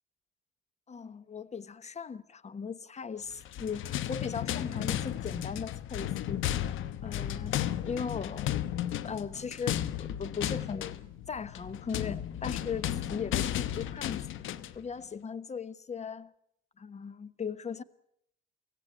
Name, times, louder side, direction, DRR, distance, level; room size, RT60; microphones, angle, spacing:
voice 1, 0.9-6.4 7.0-7.6 7.8-8.5 9.0-11.0 11.3-14.2 14.7-16.3 16.8-17.8, left 6 dB, 35° left, 1.1 m, -38 dB
sound 1, 3.4-14.8, left 11 dB, 85° left, 1.1 m, -34 dB
24.0 x 17.0 x 8.8 m
cardioid pair, 90°, 20 cm